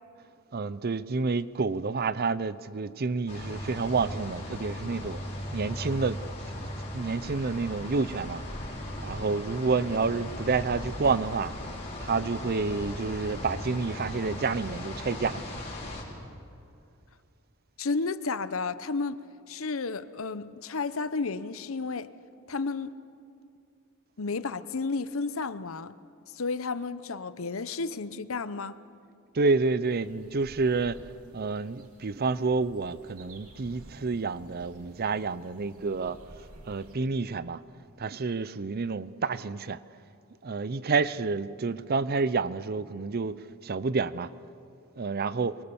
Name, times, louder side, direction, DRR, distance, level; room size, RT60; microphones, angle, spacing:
voice 1, 0.5-5.2 5.5-6.2 6.5-8.4 9.0-11.5 12.0-15.4 29.3-31.0 31.3-36.2 36.7-37.6 38.0-39.8 40.4-43.3 43.6-44.3 45.0-45.6, right 4 dB, 45° right, 0.6 m, -29 dB
sound 1, 3.3-16.0, left 1 dB, 30° left, 4.5 m, -38 dB
voice 2, 17.8-19.2 19.5-22.1 22.5-23.0 24.2-25.9 26.3-28.8, left 4 dB, 70° left, 0.8 m, -32 dB
sound 2, 29.8-37.0, right 1 dB, 90° right, 2.6 m, -52 dB
23.5 x 23.5 x 7.0 m
head